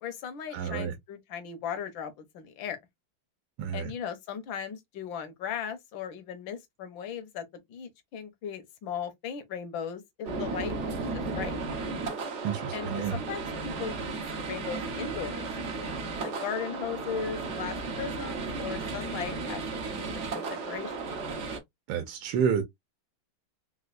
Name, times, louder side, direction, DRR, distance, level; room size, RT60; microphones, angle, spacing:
voice 1, 0.0-2.8 3.7-11.5 12.7-21.0, left 7 dB, 70° left, 1.5 m, -38 dB
voice 2, 0.5-0.9 3.6-3.9 12.4-13.2 21.9-22.6, right 7 dB, 75° right, 1.4 m, -29 dB
sound 1, 10.3-21.6, right 3 dB, 60° right, 0.7 m, -34 dB
4.1 x 2.4 x 2.4 m
omnidirectional pair, 2.3 m